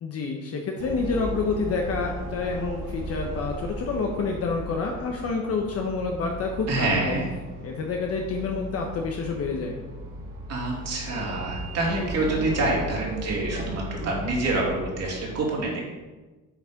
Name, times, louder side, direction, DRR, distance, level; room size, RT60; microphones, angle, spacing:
voice 1, 0.0-7.1 7.6-9.8, left 4 dB, 45° left, 1 dB, 1.0 m, -28 dB
sound 1, 0.8-15.3, equal, 75° right, 2.2 m, -36 dB
voice 2, 6.7-7.3 10.5-15.9, right 2 dB, 50° right, -2 dB, 2.9 m, -27 dB
8.4 x 6.2 x 5.1 m, 1.2 s
cardioid pair, 145°, 33 cm